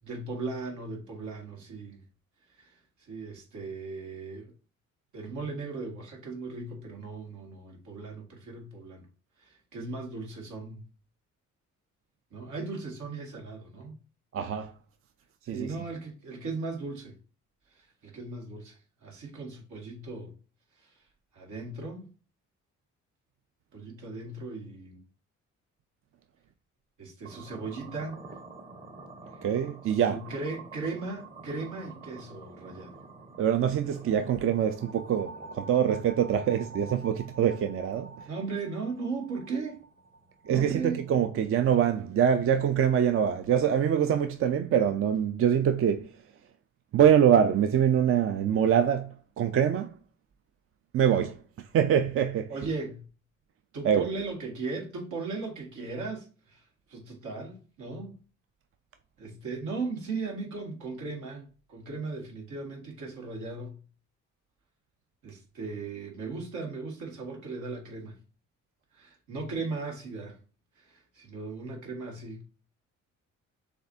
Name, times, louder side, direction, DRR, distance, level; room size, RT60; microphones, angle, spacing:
voice 1, 0.0-2.0 2.5-4.5 5.1-9.1 9.4-10.8 12.3-14.0 15.4-17.2 17.7-20.3 20.8-21.0 21.3-22.1 23.7-25.0 27.0-28.2 29.8-33.0 38.3-39.8 40.5-41.0 52.5-53.0 53.7-58.2 59.2-63.8 65.2-68.2 68.9-70.4 70.8-72.4, right 3 dB, 75° right, 1.8 m, -37 dB
voice 2, 14.3-14.7 15.5-15.7 29.4-30.2 33.4-38.1 40.5-46.1 46.9-49.9 50.9-51.4 51.7-52.5 53.8-54.1, right 9 dB, 45° right, 0.5 m, -24 dB
sound 1, 27.2-41.3, right 3 dB, 25° right, 1.0 m, -47 dB
6.8 x 2.5 x 2.6 m
cardioid pair, 90°, 30 cm